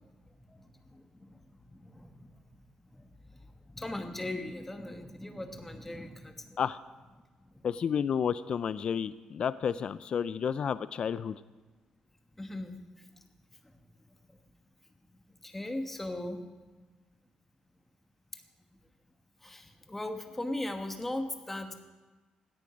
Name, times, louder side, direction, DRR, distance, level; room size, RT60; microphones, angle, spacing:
voice 1, 0.4-2.3 2.9-6.6 7.4-7.7 12.4-13.0 13.6-13.7 14.3-14.4 15.4-16.4 19.4-21.7, left 1 dB, 10° left, 6 dB, 1.1 m, -39 dB
voice 2, 7.6-11.4, left 7 dB, 45° left, 15 dB, 0.3 m, -31 dB
17.0 x 9.9 x 5.0 m, 1.3 s
cardioid pair, 150°, 2 cm